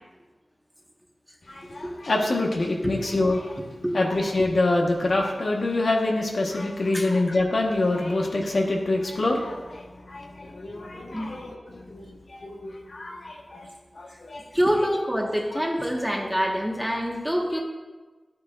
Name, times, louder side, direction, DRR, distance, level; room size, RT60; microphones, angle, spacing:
voice 1, 1.7-3.5 3.9-9.6 10.1-12.0 12.4-13.3 14.0-14.4, left 2 dB, 70° left, 0 dB, 1.4 m, -25 dB
voice 2, 14.5-17.6, equal, 5° right, 0 dB, 1.5 m, -25 dB
11.5 x 8.5 x 2.6 m, 1.3 s
wide cardioid pair, 55°, 0 cm